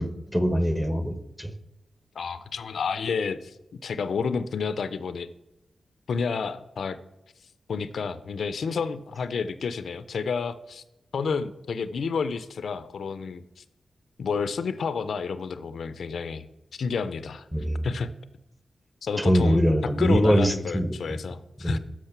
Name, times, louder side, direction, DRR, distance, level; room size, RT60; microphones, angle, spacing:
voice 1, 0.0-1.5 17.5-17.8 19.2-20.9 21.6-21.8, equal, 5° right, 11 dB, 1.0 m, -23 dB
voice 2, 2.2-5.3 6.1-7.0 7.7-10.8 11.1-13.6 14.2-16.5 16.7-17.5 17.8-18.1 19.0-21.8, left 5 dB, 80° left, 14 dB, 0.4 m, -30 dB
6.5 x 6.2 x 5.8 m, 0.93 s
cardioid pair, 45°, 0 cm